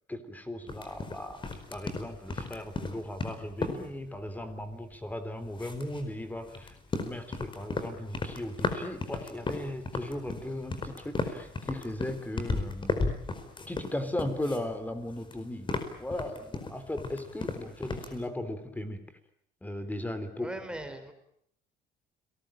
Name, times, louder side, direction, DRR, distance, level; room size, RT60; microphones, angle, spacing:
voice 1, 0.1-6.7 7.0-13.0 13.7-19.0 19.6-20.5, left 1 dB, 10° left, 10 dB, 3.6 m, -37 dB
sound 1, 0.7-5.1 5.5-14.7 15.0-18.2, left 3 dB, 30° left, 4.8 m, -35 dB
voice 2, 20.4-21.1, right 1 dB, 5° right, 8 dB, 4.7 m, -39 dB
29.5 x 19.5 x 9.0 m, 0.70 s
cardioid pair, 110°, 17 cm